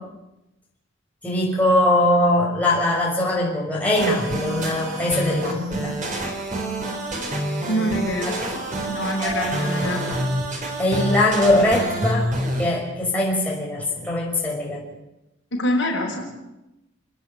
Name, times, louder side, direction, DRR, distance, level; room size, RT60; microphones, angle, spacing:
voice 1, 1.2-5.9 10.8-12.3 12.6-14.8, left 1 dB, 10° left, -4 dB, 6.0 m, -21 dB
sound 1, 3.9-12.7, right 1 dB, 40° right, 4.4 m, -27 dB
voice 2, 7.7-8.5 8.9-10.0 15.5-16.3, equal, 65° left, -1 dB, 5.6 m, -25 dB
29.5 x 10.0 x 9.9 m, 0.92 s
head